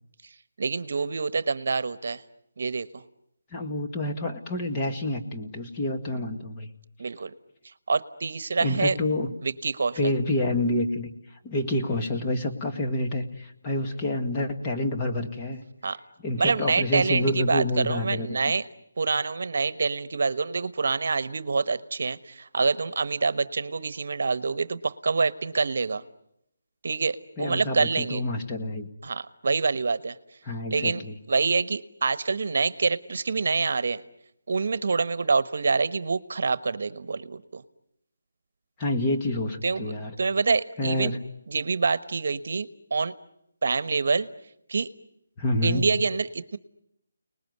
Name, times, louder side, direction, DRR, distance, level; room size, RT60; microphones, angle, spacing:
voice 1, 0.6-2.2 2.6-3.0 7.0-7.3 7.9-9.0 9.4-10.1 15.8-16.0 16.4-18.7 19.0-26.0 26.8-28.2 29.0-30.2 30.7-31.0 31.3-34.0 34.5-37.6 39.6-41.1 41.5-43.1 43.6-44.3 44.7-44.9 45.6-46.6, right 4 dB, 60° right, 15 dB, 1.2 m, -26 dB
voice 2, 3.5-6.7 8.6-9.3 10.0-15.6 16.2-18.3 27.4-28.9 30.4-31.2 38.8-40.1 40.8-41.2 45.4-45.8, left 1 dB, 20° left, 1 dB, 1.9 m, -28 dB
30.0 x 20.0 x 9.6 m, 0.83 s
hypercardioid pair, 165°, 0 cm